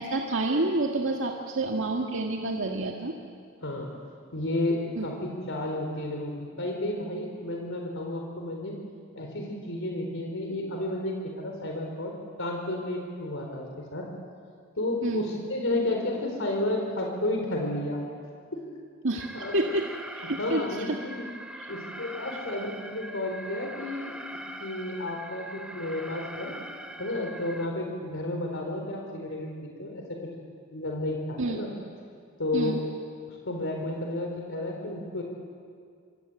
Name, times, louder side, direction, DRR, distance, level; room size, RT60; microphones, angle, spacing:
voice 1, 0.0-3.1 5.0-5.1 15.0-15.3 19.0-19.3 19.5-20.6 20.9-21.0 21.6-21.7 31.4-31.6 32.5-32.8, right 2 dB, 65° right, 1 dB, 1.9 m, -28 dB
voice 2, 4.3-8.8 9.1-12.1 12.4-14.1 14.8-18.0 18.5-18.6 19.3-19.5 20.4-21.2 21.7-26.5 27.0-30.3 30.7-31.7 32.4-32.8 33.3-35.2, left 1 dB, 65° left, 1 dB, 4.2 m, -32 dB
Alarm, 19.2-27.7, right 1 dB, 5° right, 1.5 m, -42 dB
25.5 x 25.5 x 9.1 m, 2.2 s
head